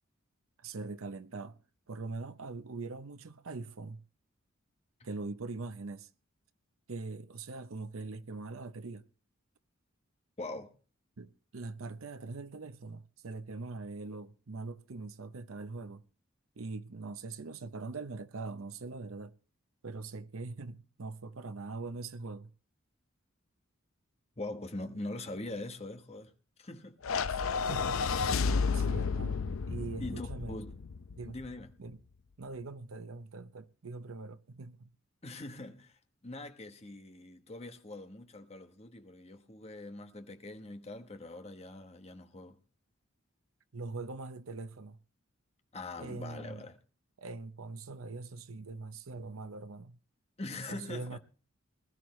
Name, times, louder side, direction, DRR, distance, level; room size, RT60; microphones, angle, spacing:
voice 1, 0.6-1.6 1.9-4.0 5.0-6.1 6.9-9.0 11.2-16.0 16.6-19.3 19.8-22.5 27.3-27.4 27.7-28.0 28.4-30.6 31.2-31.4 31.8-32.0 32.4-34.9 43.7-45.0 46.0-46.6 47.2-50.0 50.7-51.2, right 3 dB, 85° right, 0.7 m, -42 dB
voice 2, 10.4-10.7 24.4-26.3 26.6-27.0 30.0-30.7 31.2-31.7 35.2-42.6 45.7-46.8 50.4-51.2, left 2 dB, 30° left, 1.1 m, -43 dB
sound 1, 27.0-31.5, left 5 dB, 80° left, 0.6 m, -32 dB
20.0 x 13.0 x 3.1 m
head